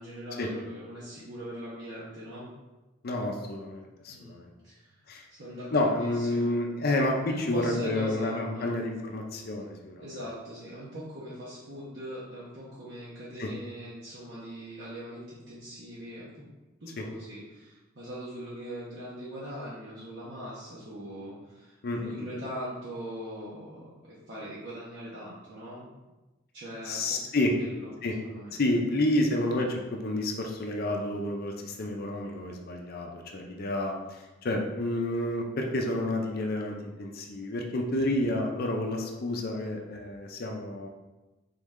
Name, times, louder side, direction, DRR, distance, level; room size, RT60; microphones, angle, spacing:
voice 1, 0.0-2.5 4.1-4.4 4.6-5.0 5.3-6.5 7.3-8.8 10.0-16.4 16.8-25.9 26.5-27.2 27.6-27.9 28.2-28.5, equal, 60° right, -8 dB, 0.9 m, -41 dB
voice 2, 3.0-4.5 5.1-5.2 5.7-10.0 13.4-13.5 17.0-17.1 21.8-22.1 26.9-27.5 28.0-28.1 28.5-40.9, left 1 dB, 50° left, 2 dB, 0.5 m, -30 dB
3.8 x 3.2 x 3.6 m, 1.1 s
head